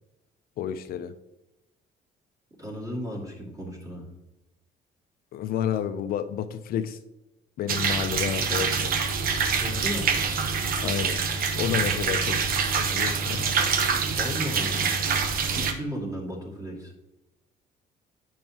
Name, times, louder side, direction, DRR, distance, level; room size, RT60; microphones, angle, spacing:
voice 1, 0.6-1.1 5.3-7.0 7.6-8.9 10.8-11.2 11.6-12.4 12.8-13.6, left 9 dB, 60° left, 9 dB, 0.5 m, -30 dB
voice 2, 2.6-4.1 9.5-10.1 11.8-11.9 14.2-15.0 15.6-16.9, equal, 20° right, -1 dB, 2.3 m, -35 dB
sound 1, 7.7-15.7, right 5 dB, 60° right, 0.9 m, -25 dB
9.0 x 5.4 x 2.8 m, 0.96 s
cardioid pair, 110°, 17 cm